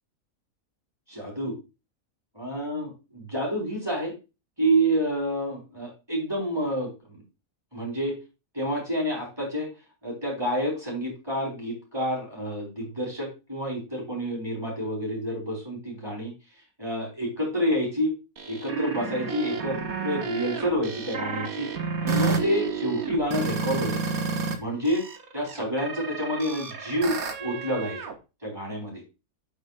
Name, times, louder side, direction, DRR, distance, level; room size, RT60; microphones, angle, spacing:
voice 1, 1.1-1.5 2.3-4.1 4.6-7.2 7.7-8.2 8.5-9.7 10.0-16.3 16.8-18.1 18.5-21.7 22.0-24.2 24.6-25.1 25.3-28.1 28.4-29.0, equal, 15° right, -3 dB, 3.9 m, -28 dB
sound 1, 18.4-24.6 24.9-28.1, right 5 dB, 80° right, 1.5 m, -31 dB
8.5 x 8.2 x 2.4 m, 0.29 s
omnidirectional pair, 1.5 m